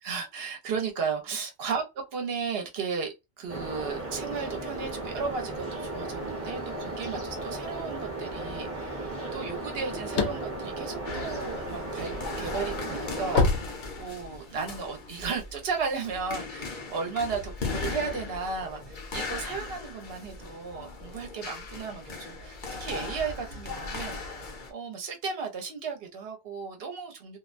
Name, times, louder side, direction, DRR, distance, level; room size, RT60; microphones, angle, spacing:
voice 1, 0.0-1.8 2.1-24.2 24.7-27.4, right 5 dB, 60° right, 0.9 m, -35 dB
sound 1, 3.5-13.4, right 2 dB, 15° right, 0.8 m, -36 dB
sound 2, 9.6-11.8 12.3-14.5, left 4 dB, 75° left, 0.9 m, -27 dB
sound 3, 11.0-24.7, left 4 dB, 50° left, 0.8 m, -38 dB
2.4 x 2.1 x 2.4 m
omnidirectional pair, 1.2 m